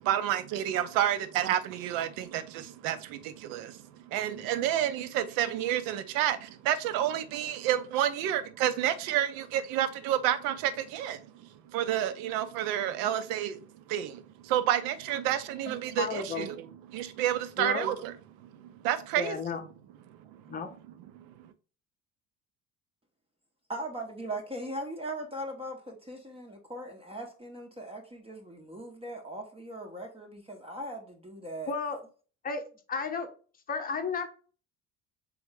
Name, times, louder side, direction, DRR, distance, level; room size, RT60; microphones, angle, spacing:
voice 1, 0.0-11.2 11.7-16.6 16.9-18.1 18.4-19.4 20.3-20.6 21.1-21.5, right 11 dB, 50° right, 0.6 m, -30 dB
voice 2, 15.7-16.5 17.6-17.9 19.2-19.6 20.5-20.7 31.7-32.0 32.4-32.6 32.9-33.3 33.7-34.3, left 5 dB, 20° left, 0.8 m, -33 dB
voice 3, 23.7-31.7, right 1 dB, 15° right, 0.7 m, -39 dB
3.8 x 3.5 x 3.4 m
figure-of-eight pair, 55°, 44 cm